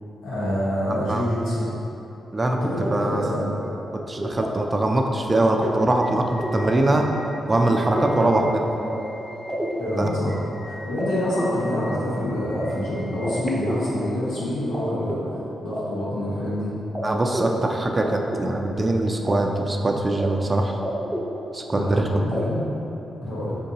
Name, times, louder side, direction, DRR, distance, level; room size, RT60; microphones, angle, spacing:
voice 1, 0.2-1.7 2.5-3.5 8.1-8.9 9.8-16.7 21.7-22.6 23.2-23.6, left 1 dB, 85° left, -9 dB, 1.3 m, -27 dB
voice 2, 0.9-1.2 2.3-2.6 2.9-3.4 3.9-7.1 7.5-8.5 9.9-10.1 17.0-20.8 21.5-22.2, right 2 dB, 25° right, 2 dB, 0.4 m, -22 dB
sound 1, 3.7-14.8 15.1-16.6 17.0-17.1 17.3-19.3 19.6-20.3 20.5-21.9 22.3-22.4, equal, 5° right, 0.8 m, -32 dB
4.4 x 3.7 x 2.8 m, 3.0 s
supercardioid pair, 60°, 0 cm